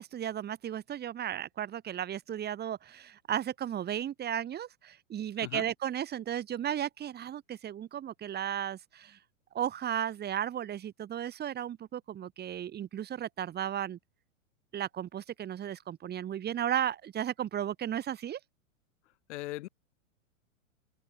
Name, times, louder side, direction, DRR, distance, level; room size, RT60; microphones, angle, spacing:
voice 1, 0.0-9.2 9.5-14.0 14.7-18.4, right 10 dB, 25° right, 4.7 m, -35 dB
voice 2, 19.3-19.7, left 17 dB, 55° left, 3.5 m, -38 dB
open air
hypercardioid pair, 130°, 41 cm